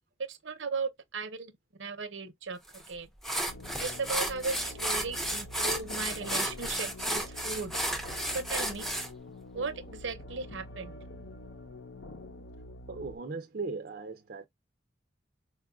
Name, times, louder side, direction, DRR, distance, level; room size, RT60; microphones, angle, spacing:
voice 1, 0.3-1.5 1.8-3.1 3.8-7.8 8.3-8.9 9.5-10.9, right 4 dB, 85° right, 0.8 m, -37 dB
sound 1, 2.7-2.9 3.2-9.1, right 1 dB, ahead, 0.5 m, -33 dB
sound 2, 3.5-13.2, left 1 dB, 75° left, 0.7 m, -46 dB
voice 2, 12.9-14.5, right 4 dB, 55° right, 0.5 m, -38 dB
4.3 x 2.3 x 2.3 m
head